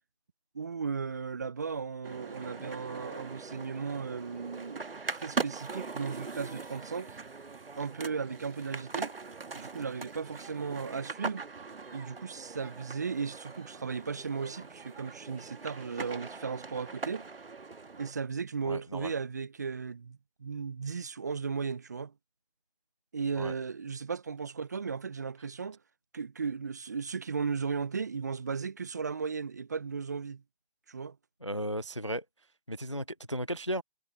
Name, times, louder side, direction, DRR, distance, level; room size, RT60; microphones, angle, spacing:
voice 1, 0.5-7.2 7.8-9.1 9.5-11.4 11.9-17.3 18.0-22.1 23.1-25.8 26.1-30.4 30.9-31.2, right 5 dB, 15° right, 0.7 m, -36 dB
sound 1, 2.0-18.1, right 4 dB, 65° right, 1.5 m, -41 dB
voice 2, 18.6-19.1 23.4-23.5 31.4-32.2 32.7-33.8, equal, 30° left, 0.4 m, -35 dB
figure-of-eight pair, 155°, 31 cm